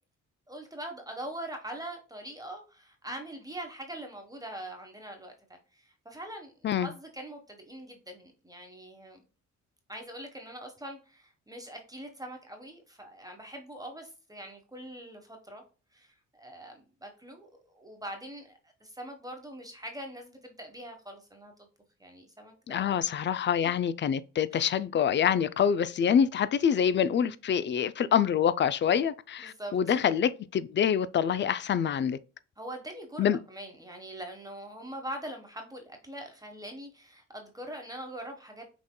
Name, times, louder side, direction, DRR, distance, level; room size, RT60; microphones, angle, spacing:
voice 1, 0.5-5.3 5.7-9.2 9.9-15.6 15.9-21.7 22.0-23.0 24.5-24.7 29.4-30.0 32.6-38.8, right 1 dB, 10° right, 1.3 m, -43 dB
voice 2, 22.7-32.2 33.2-33.4, left 8 dB, 40° left, 0.4 m, -26 dB
6.0 x 3.7 x 2.3 m
cardioid pair, 90°, 30 cm